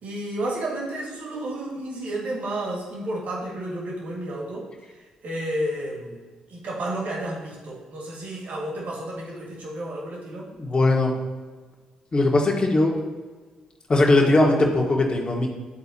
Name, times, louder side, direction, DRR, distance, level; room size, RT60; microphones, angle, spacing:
voice 1, 0.0-10.5, right 1 dB, 60° right, -3 dB, 1.9 m, -32 dB
voice 2, 10.6-11.1 12.1-12.9 13.9-15.5, left 2 dB, 30° left, 0 dB, 1.5 m, -19 dB
11.5 x 4.0 x 2.8 m, 1.4 s
hypercardioid pair, 50°, 3 cm